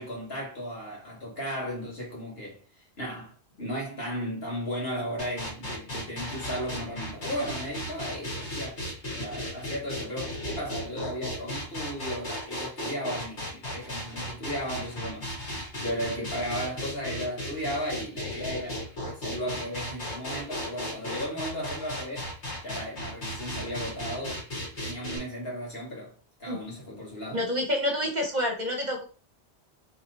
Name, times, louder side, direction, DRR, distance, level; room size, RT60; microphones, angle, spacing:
voice 1, 0.0-2.6 3.0-8.8 9.1-22.3 22.6-27.5, equal, 60° left, 2.2 m, -35 dB
sound 1, 5.2-25.2, equal, 85° left, 2.1 m, -35 dB
voice 2, 27.3-29.0, left 1 dB, 45° right, 1.0 m, -28 dB
3.6 x 3.0 x 4.0 m
omnidirectional pair, 1.1 m